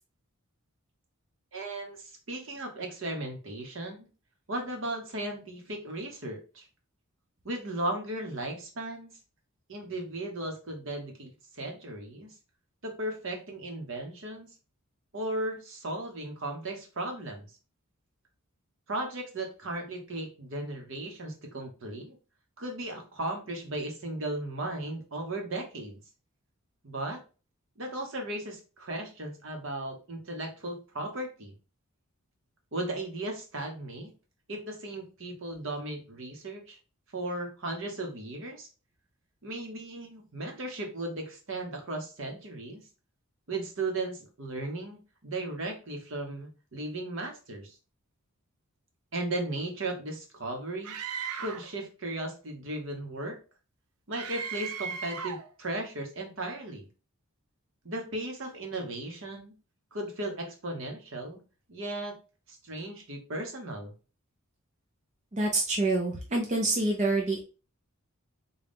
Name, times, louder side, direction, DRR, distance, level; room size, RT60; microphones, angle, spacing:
voice 1, 1.5-4.1 4.5-6.7 7.4-9.1 9.7-12.3 12.8-14.5 15.1-17.4 18.9-22.2 22.6-26.0 26.8-27.2 27.8-31.5 32.7-34.1 34.5-36.8 37.1-38.7 39.4-42.8 43.5-47.8 49.1-51.0 51.4-53.4 54.1-56.8 57.8-59.5 59.9-61.4 61.7-62.2 62.5-63.9, right 2 dB, 60° right, 3 dB, 0.9 m, -36 dB
Screaming, 50.8-51.7 54.1-55.5, right 6 dB, 85° right, 0.5 m, -36 dB
voice 2, 65.3-67.4, right 2 dB, 30° right, -2 dB, 0.5 m, -27 dB
3.9 x 2.3 x 3.5 m, 0.34 s
head